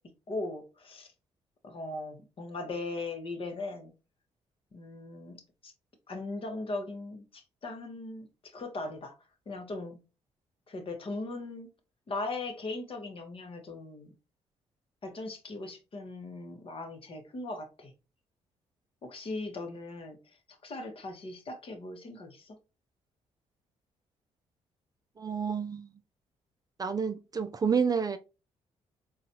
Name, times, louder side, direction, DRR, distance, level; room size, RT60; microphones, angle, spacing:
voice 1, 0.3-1.1 1.6-3.9 4.7-5.7 6.1-9.1 9.5-10.0 10.7-11.7 12.1-14.1 15.0-17.9 19.0-20.2 20.6-22.6, left 2 dB, 45° left, 1.0 m, -39 dB
voice 2, 25.2-25.9 26.8-28.2, right 6 dB, 30° right, 0.4 m, -29 dB
3.9 x 2.3 x 2.7 m
supercardioid pair, 60°, 13 cm